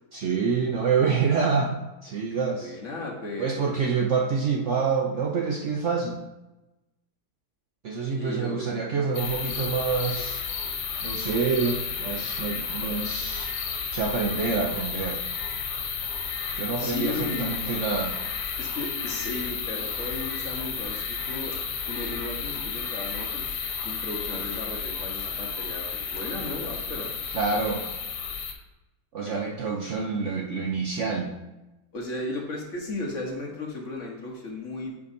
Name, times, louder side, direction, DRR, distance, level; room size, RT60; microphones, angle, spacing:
voice 1, 0.1-1.7 2.0-2.7 3.4-6.2 7.8-10.5 11.0-13.5 13.9-15.2 16.5-18.2 27.3-27.8 29.1-31.3, right 5 dB, 60° right, 0 dB, 0.8 m, -27 dB
voice 2, 2.6-3.8 8.2-8.7 16.8-17.5 18.6-21.5 21.9-23.5 23.8-27.1 27.6-27.7 29.2-29.4 31.9-34.9, left 2 dB, 50° left, -1 dB, 1.4 m, -35 dB
sound 1, 9.1-28.5, left 6 dB, 90° left, 1.5 m, -32 dB
9.1 x 5.0 x 2.7 m, 1.0 s
omnidirectional pair, 1.8 m